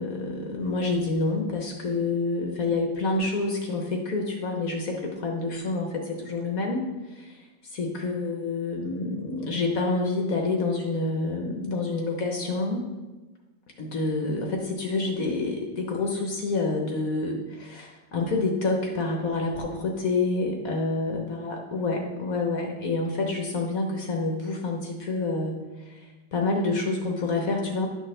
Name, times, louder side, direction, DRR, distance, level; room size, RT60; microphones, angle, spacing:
voice 1, 0.0-12.8 13.8-25.5 25.8-27.9, left 3 dB, 55° left, 1 dB, 1.3 m, -28 dB
11.0 x 6.3 x 3.3 m, 1.2 s
omnidirectional pair, 2.1 m